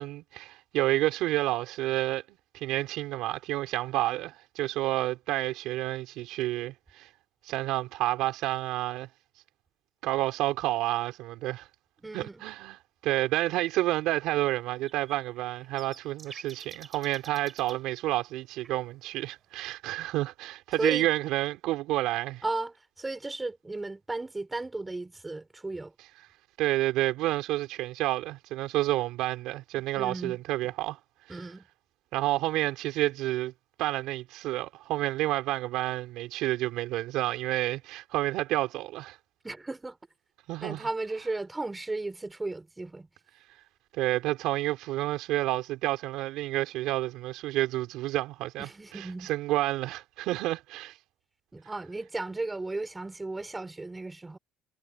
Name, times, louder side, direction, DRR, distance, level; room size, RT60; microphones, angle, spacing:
voice 1, 0.0-7.1 7.4-9.1 10.0-11.7 12.1-12.8 13.0-22.4 26.6-31.0 32.1-33.5 33.8-39.2 40.5-40.9 43.9-48.7 48.9-51.0, right 16 dB, 80° right, 4.2 m, -29 dB
voice 2, 12.0-12.4 20.8-21.1 22.4-25.9 30.0-30.4 31.3-31.7 39.4-40.0 40.6-43.1 48.6-49.3 51.5-54.4, right 2 dB, 15° right, 5.6 m, -35 dB
sound 1, 14.9-17.8 18.6-18.8, right 5 dB, 30° right, 8.0 m, -48 dB
cardioid pair, 115°, 0 cm